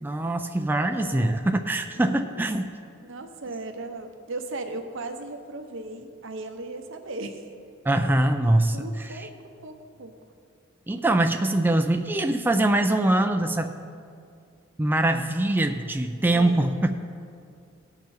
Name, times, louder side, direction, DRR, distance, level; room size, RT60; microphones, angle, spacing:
voice 1, 0.0-2.7 7.8-9.3 10.9-13.7 14.8-16.9, right 1 dB, 10° right, 6 dB, 0.3 m, -23 dB
voice 2, 0.9-1.4 2.0-2.6 3.0-7.4 8.7-9.3 9.6-10.1 16.3-16.7, right 2 dB, 70° right, 6 dB, 0.9 m, -37 dB
17.0 x 5.9 x 4.4 m, 2.3 s
head